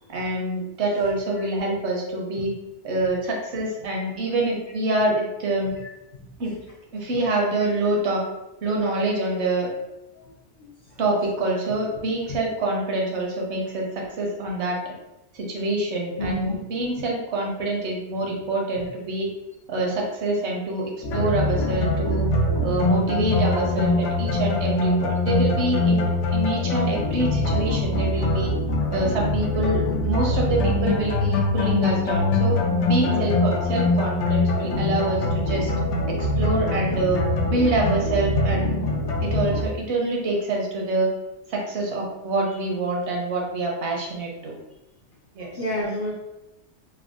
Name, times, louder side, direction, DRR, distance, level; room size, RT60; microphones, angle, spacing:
voice 1, 0.1-2.5 2.8-5.7 6.4-6.6 6.9-8.2 8.6-9.7 11.0-14.9 15.3-19.3 19.7-22.3 22.6-28.5 28.9-32.6 32.9-35.7 36.1-38.8 39.2-41.1 41.5-44.6 45.3-45.5, right 2 dB, 70° right, -1 dB, 1.0 m, -26 dB
voice 2, 10.6-11.0 16.2-16.6 33.1-33.3 45.4-46.1, left 1 dB, 60° left, -4 dB, 0.6 m, -30 dB
sound 1, 21.0-39.6, left 2 dB, 85° left, 0.9 m, -23 dB
3.4 x 2.1 x 2.4 m, 0.93 s
omnidirectional pair, 1.2 m